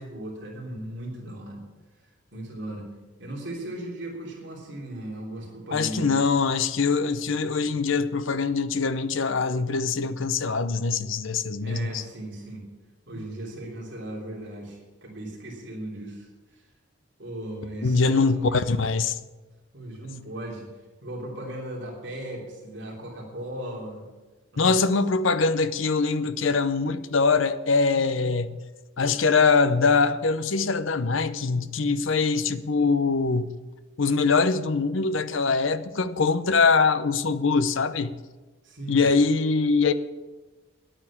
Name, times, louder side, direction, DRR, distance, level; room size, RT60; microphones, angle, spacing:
voice 1, 0.0-1.6 2.0-2.9 3.2-6.2 11.6-12.7 13.1-16.7 17.2-18.7 19.7-20.7 21.0-24.1 24.5-24.8 38.6-39.1, right 1 dB, 60° right, 3.2 m, -37 dB
voice 2, 5.7-12.0 17.8-19.2 24.6-28.6 29.0-33.5 34.0-38.1 38.9-39.9, left 4 dB, 75° left, 0.7 m, -23 dB
10.0 x 8.9 x 8.5 m
head